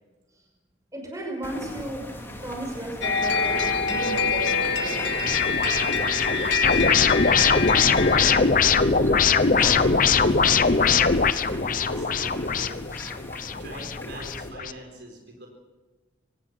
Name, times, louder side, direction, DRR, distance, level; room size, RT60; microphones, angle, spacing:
voice 1, 0.9-5.1, right 1 dB, 15° right, 1 dB, 6.0 m, -35 dB
sound 1, 1.4-14.5, left 1 dB, 10° left, 2.4 m, -39 dB
sound 2, 3.0-8.4, left 4 dB, 60° left, 2.2 m, -25 dB
sound 3, 3.2-14.7, left 5 dB, 40° left, 0.9 m, -22 dB
voice 2, 5.9-11.0 11.3-13.0 13.6-15.5, equal, 55° right, 2 dB, 4.1 m, -42 dB
25.5 x 18.5 x 6.1 m, 1.2 s
head